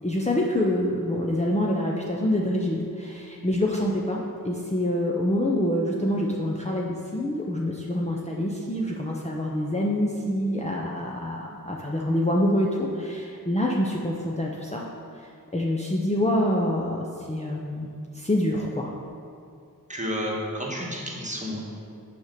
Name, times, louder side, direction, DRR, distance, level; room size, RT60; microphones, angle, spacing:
voice 1, 0.0-14.8 15.2-18.9, left 1 dB, 20° left, -3 dB, 0.7 m, -26 dB
voice 2, 19.9-21.6, equal, 20° right, -3 dB, 1.5 m, -31 dB
7.0 x 5.1 x 6.6 m, 2.4 s
wide cardioid pair, 65°, 36 cm